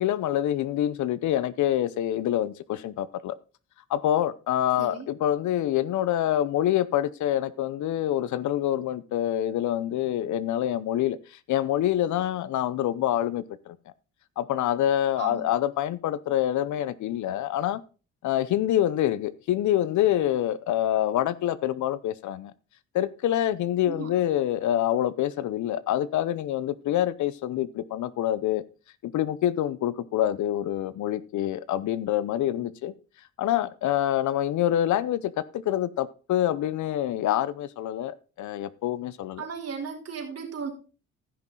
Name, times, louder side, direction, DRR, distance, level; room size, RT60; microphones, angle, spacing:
voice 1, 0.0-3.4 3.9-13.8 14.4-17.8 18.2-22.5 22.9-28.6 29.0-32.9 33.4-39.5, left 12 dB, 75° left, 0.7 m, -26 dB
voice 2, 39.4-40.7, right 6 dB, 55° right, 3.6 m, -35 dB
15.0 x 6.2 x 3.8 m
cardioid pair, 90°, 30 cm